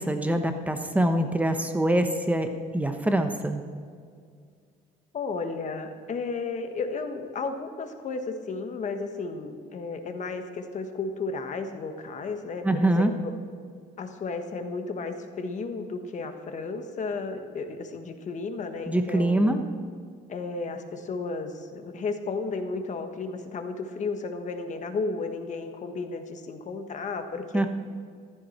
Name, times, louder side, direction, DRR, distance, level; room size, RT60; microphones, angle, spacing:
voice 1, 0.0-3.6 12.6-13.1 18.9-19.6 27.5-27.7, right 1 dB, 10° right, 6 dB, 1.1 m, -24 dB
voice 2, 5.1-13.1 14.0-19.6 20.3-27.7, left 4 dB, 45° left, 7 dB, 1.4 m, -33 dB
15.0 x 14.0 x 4.4 m, 2.1 s
cardioid pair, 110°, 17 cm